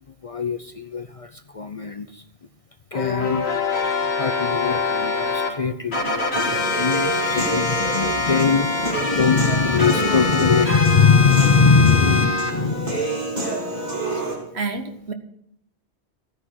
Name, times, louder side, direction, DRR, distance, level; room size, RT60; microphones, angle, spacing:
voice 1, 0.2-2.2 2.9-3.4 4.2-14.0, left 5 dB, 40° left, 10 dB, 0.6 m, -21 dB
sound 1, 2.9-5.5 5.9-12.5, left 3 dB, 70° left, 2.3 m, -24 dB
Human voice / Piano, 6.3-14.3, right 2 dB, 40° right, 3.7 m, -28 dB
voice 2, 14.5-15.1, right 4 dB, 70° right, 8 dB, 1.5 m, -29 dB
15.0 x 9.6 x 6.2 m, 0.71 s
omnidirectional pair, 1.1 m